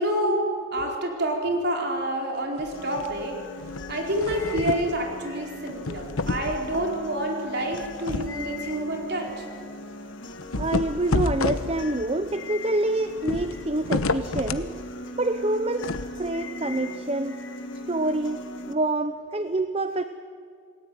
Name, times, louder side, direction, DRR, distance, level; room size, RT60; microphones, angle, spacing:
voice 1, 0.0-3.4 3.9-9.5, right 1 dB, 50° right, 1 dB, 4.4 m, -28 dB
sound 1, 2.6-3.2 3.6-5.0 5.7-6.9 7.7-8.4 8.8-8.9 9.3-9.4 10.4-12.1 13.2-14.7 15.8-16.1, left 3 dB, 85° left, 1.0 m, -29 dB
sound 2, 2.7-18.7, left 2 dB, 60° left, 1.8 m, -40 dB
voice 2, 10.6-14.7 15.2-15.9 16.2-17.4 17.9-18.4 18.7-20.0, right 2 dB, 30° right, 10 dB, 0.6 m, -26 dB
28.0 x 18.5 x 9.3 m, 2.3 s
head